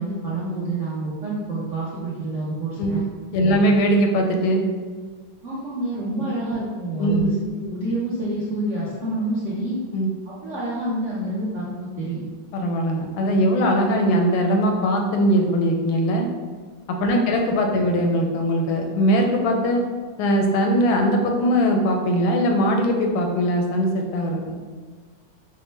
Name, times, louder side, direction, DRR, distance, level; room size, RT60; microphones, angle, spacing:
voice 1, 0.0-3.0 3.4-3.7 5.4-7.3 7.6-9.8 10.3-12.2 17.1-17.3, right 2 dB, 65° right, -8 dB, 0.7 m, -28 dB
voice 2, 3.3-4.6 7.0-7.3 9.9-10.1 12.5-16.3 16.9-19.8 20.2-24.5, equal, 85° left, 2 dB, 1.4 m, -20 dB
5.2 x 2.1 x 3.2 m, 1.5 s
omnidirectional pair, 2.2 m